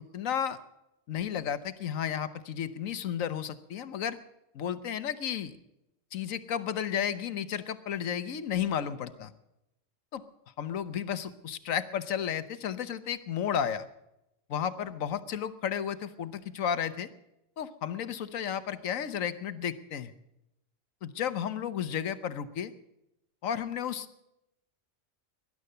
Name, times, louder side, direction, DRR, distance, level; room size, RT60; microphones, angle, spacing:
voice 1, 0.1-0.6 1.1-4.2 4.5-5.6 6.1-9.3 10.1-10.2 10.6-13.9 14.5-17.1 17.6-20.1 21.0-22.7 23.4-24.2, left 8 dB, 85° left, 13 dB, 1.3 m, -33 dB
19.5 x 11.0 x 6.7 m, 0.88 s
omnidirectional pair, 1.3 m